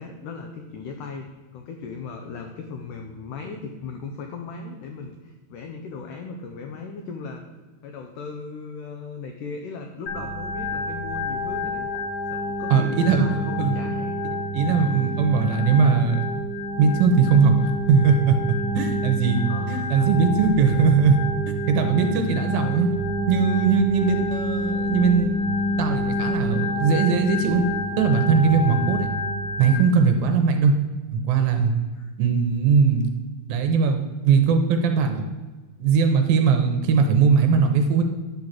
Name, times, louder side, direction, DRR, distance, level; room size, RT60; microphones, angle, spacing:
voice 1, 0.0-7.4 7.8-11.9 12.3-14.4 14.8-15.2 19.4-20.1 24.0-24.1 28.6-28.9 31.6-32.1, left 4 dB, 85° left, 4 dB, 1.8 m, -37 dB
Organ, 10.1-29.8, left 1 dB, 65° left, 2.1 m, -28 dB
voice 2, 12.7-13.3 13.6-13.8 14.5-16.2 16.8-18.4 18.7-21.2 21.5-22.9 23.3-25.3 25.8-27.6 28.0-29.1 29.6-30.7 31.1-31.7 32.2-33.1 33.5-35.3 35.8-38.0, right 5 dB, 75° right, 6 dB, 2.3 m, -20 dB
10.5 x 4.0 x 7.4 m, 1.3 s
omnidirectional pair, 4.6 m